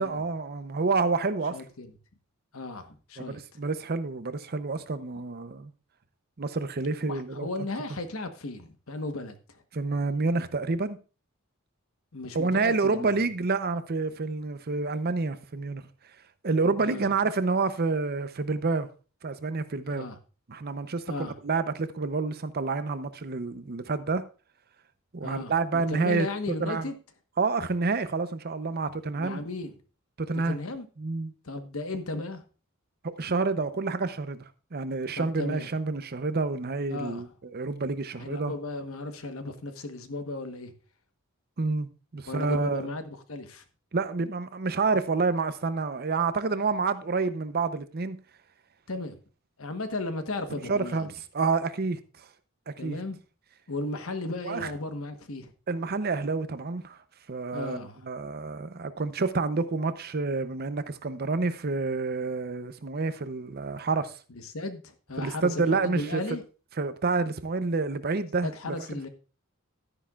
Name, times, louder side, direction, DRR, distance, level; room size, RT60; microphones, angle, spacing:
voice 1, 0.0-1.6 3.2-5.7 6.4-7.5 9.7-11.0 12.3-15.9 16.4-18.9 19.2-20.1 20.5-24.2 25.1-26.3 26.6-26.9 27.4-29.4 30.2-30.6 31.0-31.3 33.0-34.4 34.7-38.6 41.6-42.9 43.9-48.2 50.7-52.0 52.7-53.0 54.4-54.7 55.7-57.0 57.3-64.1 65.2-66.2 66.8-68.7, right 4 dB, 45° right, 0.7 m, -28 dB
voice 2, 1.5-1.9 2.5-3.4 7.0-9.6 12.1-13.2 16.8-17.0 19.9-20.2 21.1-21.3 25.2-27.0 29.2-29.7 30.4-30.8 31.4-32.4 35.2-35.7 36.9-37.2 38.2-40.7 42.3-43.6 48.9-49.2 49.6-51.1 52.8-53.2 53.7-55.5 57.5-58.1 64.4-66.4 68.4-69.1, left 2 dB, 65° left, 1.2 m, -35 dB
12.0 x 10.0 x 2.4 m
head